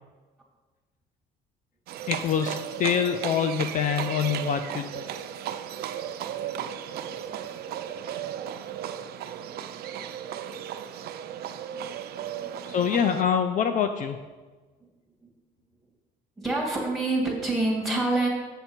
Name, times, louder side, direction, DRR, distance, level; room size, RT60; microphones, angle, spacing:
Livestock farm animals working animals, 1.9-13.2, right 9 dB, 65° right, 0.5 m, -35 dB
voice 1, 2.1-5.0 12.7-14.2, left 8 dB, 50° left, 8 dB, 0.5 m, -25 dB
voice 2, 6.5-7.1 8.2-8.3 9.9-10.0 11.2-11.4 11.7-11.9 12.4-13.1 14.8-14.9 15.2-15.3 16.4-18.3, right 2 dB, ahead, -2 dB, 2.3 m, -29 dB
7.6 x 6.6 x 4.4 m, 1.3 s
cardioid pair, 110°, 17 cm